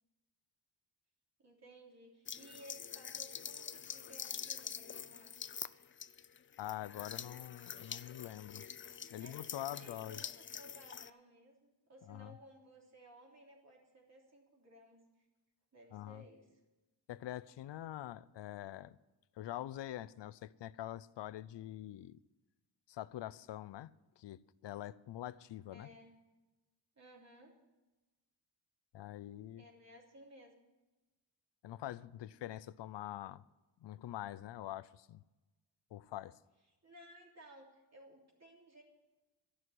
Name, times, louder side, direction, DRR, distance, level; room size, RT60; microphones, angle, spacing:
voice 1, 1.4-5.3 9.1-15.3 15.7-16.6 25.7-26.1 27.0-27.6 29.6-30.5 36.8-38.8, right 1 dB, 35° right, 3.3 m, -58 dB
sound 1, 2.3-11.1, left 7 dB, 30° left, 0.4 m, -46 dB
voice 2, 6.6-8.7 9.1-10.2 12.1-12.3 15.9-16.2 17.1-19.0 19.4-22.2 22.9-23.9 24.2-25.9 28.9-29.6 31.6-33.4 33.8-35.2 35.9-36.4, left 13 dB, 75° left, 0.6 m, -45 dB
13.5 x 6.2 x 9.6 m
wide cardioid pair, 100°, 44 cm